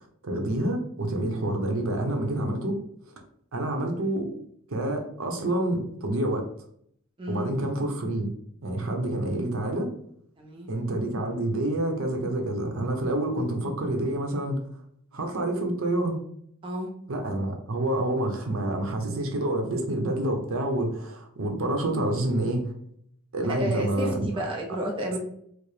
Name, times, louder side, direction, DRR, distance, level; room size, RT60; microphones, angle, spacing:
voice 1, 0.0-2.8 3.1-3.2 3.5-4.3 4.7-6.5 7.3-8.3 8.6-9.9 10.7-14.6 15.1-16.2 17.1-22.7 23.3-24.4, right 1 dB, 75° right, 3 dB, 0.7 m, -28 dB
voice 2, 10.4-10.7 16.6-16.9 23.6-24.1 24.4-25.2, equal, 25° right, 0 dB, 0.4 m, -31 dB
4.6 x 2.1 x 3.2 m, 0.68 s
head